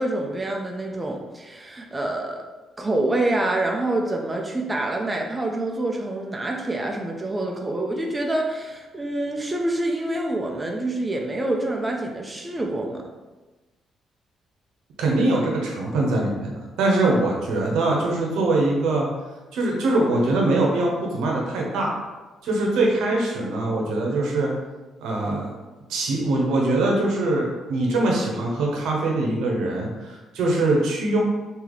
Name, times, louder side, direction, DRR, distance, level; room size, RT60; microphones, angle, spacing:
voice 1, 0.0-2.4 2.8-13.0, right 2 dB, 20° right, 1 dB, 0.5 m, -26 dB
voice 2, 15.0-19.1 19.5-21.9 22.4-24.5 25.0-25.4 25.9-31.2, right 2 dB, 85° right, -1 dB, 0.8 m, -22 dB
3.1 x 2.8 x 3.9 m, 1.2 s
cardioid pair, 90°, 0 cm